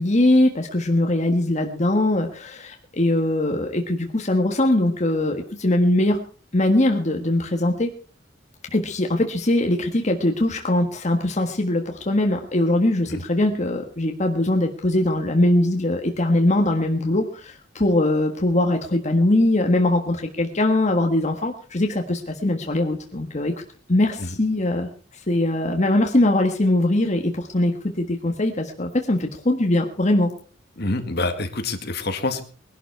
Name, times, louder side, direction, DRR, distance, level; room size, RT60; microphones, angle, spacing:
voice 1, 0.0-6.2 6.5-7.9 8.7-23.5 23.9-24.9 25.3-30.3, left 1 dB, 35° left, 3 dB, 1.6 m, -21 dB
voice 2, 30.8-32.4, left 2 dB, 60° left, 7 dB, 2.0 m, -26 dB
21.0 x 11.5 x 4.6 m, 0.40 s
head